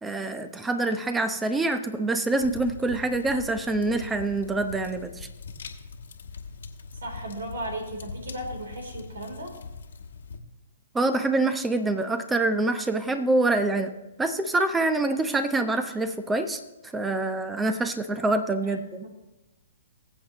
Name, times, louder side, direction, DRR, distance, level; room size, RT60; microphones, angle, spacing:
voice 1, 0.0-5.3 10.9-13.9 14.2-16.6 16.9-19.0, right 2 dB, 10° right, 9 dB, 0.8 m, -26 dB
sound 1, 2.4-10.4, left 4 dB, 75° left, 1.4 m, -42 dB
voice 2, 6.9-9.5 18.6-19.1, right 1 dB, 80° right, 3 dB, 3.4 m, -36 dB
21.0 x 7.8 x 3.0 m, 1.1 s
hypercardioid pair, 130°, 0 cm